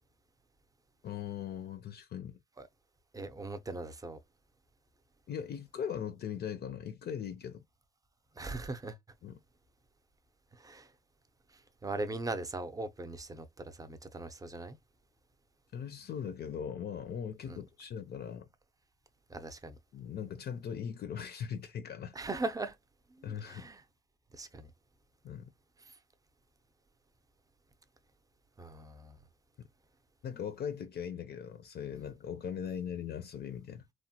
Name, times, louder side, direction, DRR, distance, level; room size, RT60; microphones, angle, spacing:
voice 1, 1.0-2.4 5.3-7.6 9.2-9.4 15.7-18.5 19.9-22.2 23.2-23.7 25.2-25.5 30.2-33.9, left 8 dB, 55° left, 0.5 m, -39 dB
voice 2, 3.1-4.2 8.4-9.0 10.6-10.9 11.8-14.8 17.5-17.6 19.3-19.8 22.1-22.8 23.2-23.8 24.3-24.7 28.6-29.2, right 2 dB, 15° right, 0.5 m, -39 dB
3.0 x 2.1 x 2.8 m
cardioid pair, 90°, 20 cm